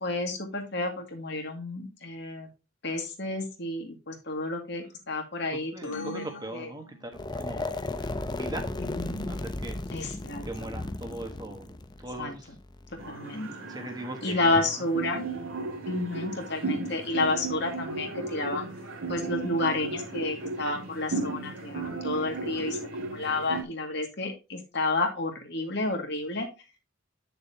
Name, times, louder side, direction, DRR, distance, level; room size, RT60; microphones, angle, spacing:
voice 1, 0.0-2.5 2.8-6.2 6.5-6.7 9.0-9.3 9.9-10.4 12.2-12.3 13.1-13.7 14.2-15.2 15.9-18.7 19.1-26.5, left 2 dB, 55° left, 3 dB, 2.1 m, -30 dB
voice 2, 5.5-7.8 8.3-8.7 9.3-9.8 10.5-12.6 13.7-14.9, right 2 dB, 20° right, 5 dB, 1.3 m, -40 dB
sound 1, 5.8-7.5, left 3 dB, 85° left, 1.6 m, -43 dB
sound 2, 7.1-13.1, left 2 dB, 20° left, 0.6 m, -35 dB
sound 3, 13.0-23.6, right 3 dB, 80° right, 2.5 m, -35 dB
9.1 x 6.7 x 2.8 m, 0.28 s
head